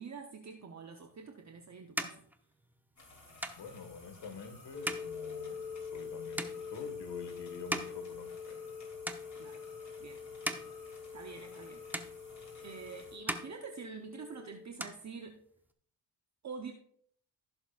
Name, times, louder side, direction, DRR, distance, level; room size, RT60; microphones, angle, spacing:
voice 1, 0.0-2.3 9.3-9.7 10.0-10.2 11.1-12.3 12.6-15.4 16.4-16.7, right 5 dB, 35° right, 4 dB, 1.0 m, -47 dB
sound 1, 1.1-8.8 9.0-9.7 10.2-11.7 11.9-12.8 13.1-14.3 14.6-15.7, right 1 dB, 5° right, 0.9 m, -42 dB
sound 2, 3.0-13.2, left 2 dB, 40° left, 3.9 m, -56 dB
voice 2, 3.6-8.6, left 6 dB, 65° left, 6 dB, 1.9 m, -47 dB
sound 3, 4.7-14.7, left 6 dB, 20° left, 1.4 m, -45 dB
15.5 x 6.9 x 2.5 m, 0.63 s
cardioid pair, 80°, 45 cm